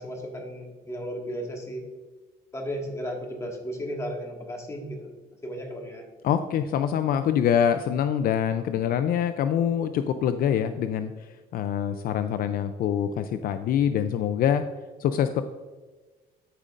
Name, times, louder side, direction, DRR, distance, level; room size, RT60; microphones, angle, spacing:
voice 1, 0.0-1.9 2.5-5.1 5.4-6.0, equal, 15° left, 1 dB, 1.7 m, -34 dB
voice 2, 6.2-14.6 15.0-15.4, left 9 dB, 60° left, 9 dB, 0.4 m, -25 dB
12.5 x 5.1 x 2.5 m, 1.3 s
cardioid pair, 110°, 17 cm